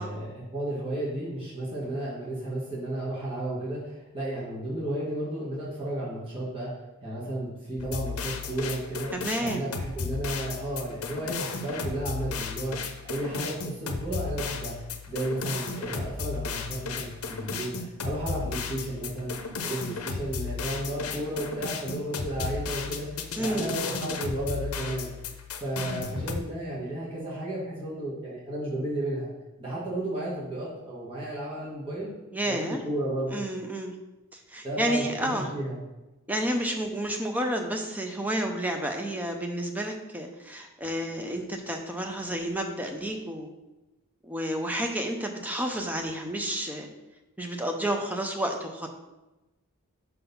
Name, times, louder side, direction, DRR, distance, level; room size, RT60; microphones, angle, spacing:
voice 1, 0.0-6.7 7.0-9.1 9.4-14.7 15.1-19.3 19.6-25.1 25.6-29.3 29.6-32.1 32.5-33.4 34.6-35.8, right 1 dB, 25° right, -8 dB, 1.6 m, -33 dB
sound 1, 7.8-26.4, left 5 dB, 75° left, 0.7 m, -34 dB
voice 2, 9.1-9.6 23.4-23.8 32.3-32.8 33.3-33.9 34.3-35.5 36.3-43.5 44.2-46.9 47.4-48.9, right 1 dB, 5° right, 3 dB, 0.6 m, -30 dB
5.7 x 3.9 x 5.4 m, 1.0 s
head